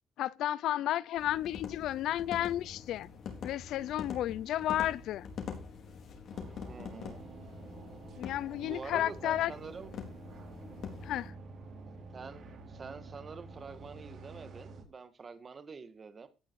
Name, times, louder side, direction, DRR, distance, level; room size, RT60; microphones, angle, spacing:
voice 1, 0.2-3.1 3.4-5.3 8.2-9.5 11.0-11.3, left 13 dB, 80° left, 0.5 m, -32 dB
sound 1, 1.2-11.3, left 6 dB, 60° left, 3.8 m, -45 dB
sound 2, 6.3-14.8, right 3 dB, 55° right, 4.4 m, -49 dB
voice 2, 6.7-7.2 8.6-9.9 12.1-16.3, right 5 dB, 35° right, 1.9 m, -46 dB
17.0 x 6.2 x 4.8 m
cardioid pair, 115°, 0 cm